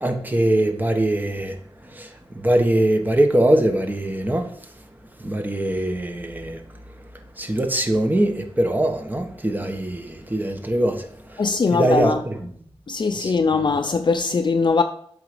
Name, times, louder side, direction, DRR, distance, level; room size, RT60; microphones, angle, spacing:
voice 1, 0.0-1.6 1.9-4.5 5.2-6.6 7.4-11.4 11.7-12.5 13.1-13.6, right 1 dB, 20° right, 1.3 m, -22 dB
voice 2, 11.4-12.2 12.9-14.8, left 4 dB, 50° left, 0.5 m, -21 dB
7.8 x 5.1 x 5.1 m
wide cardioid pair, 65°, 10 cm